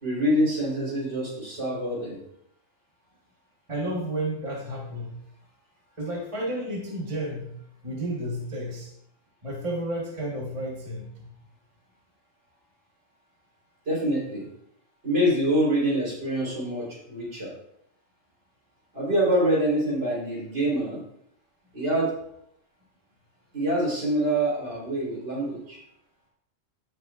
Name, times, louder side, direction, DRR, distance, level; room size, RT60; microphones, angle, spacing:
voice 1, 0.0-2.2 13.9-14.5 15.0-17.5 18.9-21.0 21.7-22.1 23.5-25.8, right 1 dB, 60° right, -5 dB, 3.9 m, -25 dB
voice 2, 3.7-5.2 6.0-7.6 7.8-8.9 9.4-11.3, right 1 dB, 25° right, -2 dB, 1.3 m, -32 dB
15.0 x 5.4 x 2.4 m, 0.71 s
omnidirectional pair, 1.3 m